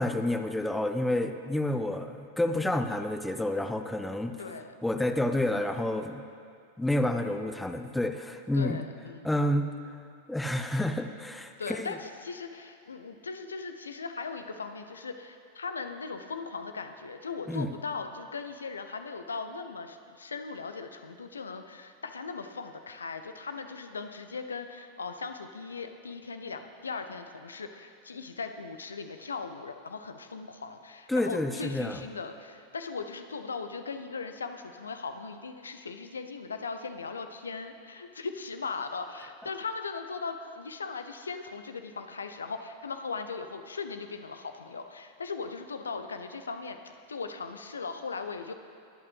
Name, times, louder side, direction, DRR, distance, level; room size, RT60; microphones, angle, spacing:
voice 1, 0.0-4.4 4.8-6.2 6.8-8.8 9.2-9.7 10.3-12.0 17.5-17.7 31.1-32.0, left 1 dB, 5° left, 6 dB, 0.7 m, -29 dB
voice 2, 4.4-4.7 8.5-9.3 11.6-48.5, left 4 dB, 75° left, 8 dB, 0.7 m, -38 dB
22.0 x 8.7 x 3.3 m, 2.4 s
figure-of-eight pair, 90°, 0 cm